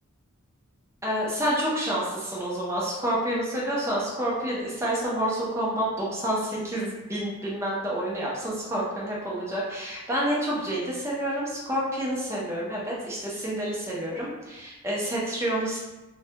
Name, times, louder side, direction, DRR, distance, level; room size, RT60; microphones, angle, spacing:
voice 1, 1.0-15.8, right 1 dB, 10° right, -5 dB, 0.5 m, -28 dB
2.2 x 2.1 x 2.8 m, 1.1 s
head